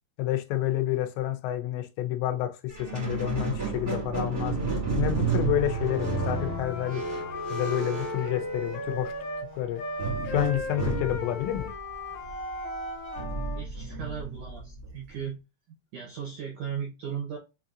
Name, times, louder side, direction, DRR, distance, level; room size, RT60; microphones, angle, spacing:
voice 1, 0.2-2.5 2.8-4.6 5.0-7.0 7.5-9.1 9.5-9.8 10.2-11.7, left 13 dB, 85° left, 3.0 m, -29 dB
Squeak, 2.7-9.0 10.0-15.2, right 4 dB, 45° right, 1.0 m, -32 dB
Wind instrument woodwind instrument, 5.4-10.1, left 1 dB, 45° left, 1.3 m, -47 dB
Wind instrument woodwind instrument 2, 5.8-9.5 9.8-13.6, left 3 dB, 65° left, 3.0 m, -37 dB
voice 2, 13.5-15.4 15.7-17.4, right 8 dB, 75° right, 1.8 m, -37 dB
7.0 x 2.8 x 2.5 m
omnidirectional pair, 5.1 m